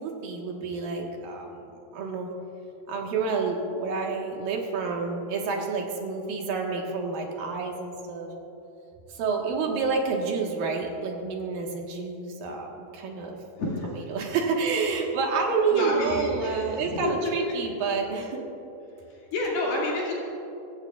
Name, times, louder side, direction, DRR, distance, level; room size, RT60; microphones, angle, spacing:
voice 1, 0.0-1.5 1.9-2.3 2.9-8.3 9.2-13.4 13.8-18.4, right 4 dB, 65° right, 0 dB, 2.9 m, -28 dB
voice 2, 13.6-13.9 15.7-17.1 17.5-17.6 19.1-20.1, left 2 dB, 65° left, -5 dB, 4.1 m, -30 dB
26.0 x 15.0 x 2.4 m, 2.9 s
omnidirectional pair, 4.9 m